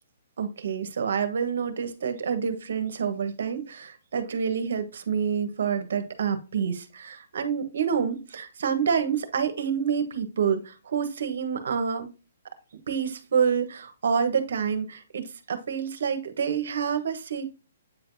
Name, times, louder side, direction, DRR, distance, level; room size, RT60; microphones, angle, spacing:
voice 1, 0.4-12.1 12.9-17.5, right 7 dB, 75° right, 1.2 m, -28 dB
8.6 x 4.5 x 2.7 m
hypercardioid pair, 145°, 0 cm